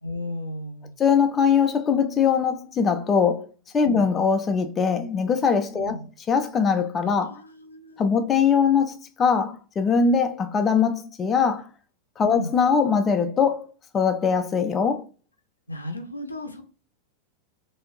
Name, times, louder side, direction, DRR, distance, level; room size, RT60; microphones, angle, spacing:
voice 1, 0.0-0.9 3.8-4.1 5.7-6.1 7.0-8.1 12.2-12.5 15.7-16.6, left 1 dB, 85° left, 0.6 m, -35 dB
voice 2, 1.0-3.5 3.7-6.0 6.3-7.4 8.0-11.7 12.2-15.0, left 6 dB, 20° left, 0.4 m, -22 dB
3.3 x 2.7 x 3.0 m
figure-of-eight pair, 90°, 0 cm